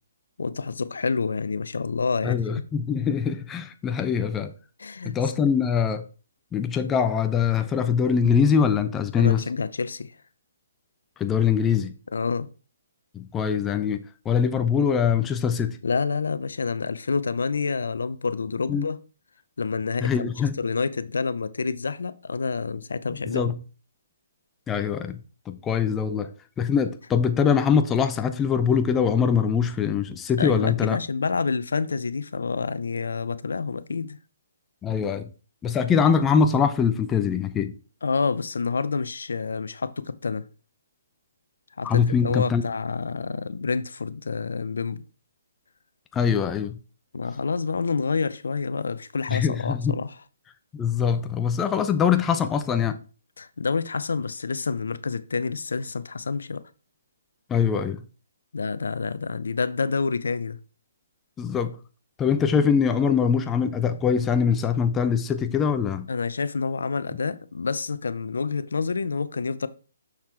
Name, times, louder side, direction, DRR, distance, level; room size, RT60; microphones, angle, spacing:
voice 1, 0.4-2.4 4.8-5.2 9.2-10.1 12.1-12.5 15.8-19.0 19.6-23.5 30.4-34.2 38.0-40.4 41.8-45.0 47.1-50.2 53.4-56.6 58.5-60.6 66.1-69.7, left 4 dB, 75° left, 0.7 m, -28 dB
voice 2, 2.2-4.5 5.0-6.0 6.5-9.4 11.2-11.9 13.1-15.8 18.7-18.8 20.0-20.5 23.3-23.5 24.7-25.2 25.5-26.3 26.6-31.0 34.8-35.3 35.6-37.7 41.8-42.6 46.1-46.8 49.3-50.0 50.7-53.0 57.5-58.0 61.4-61.8 62.2-66.1, left 7 dB, 15° left, 0.6 m, -23 dB
6.5 x 5.8 x 4.4 m
hypercardioid pair, 145°, 0 cm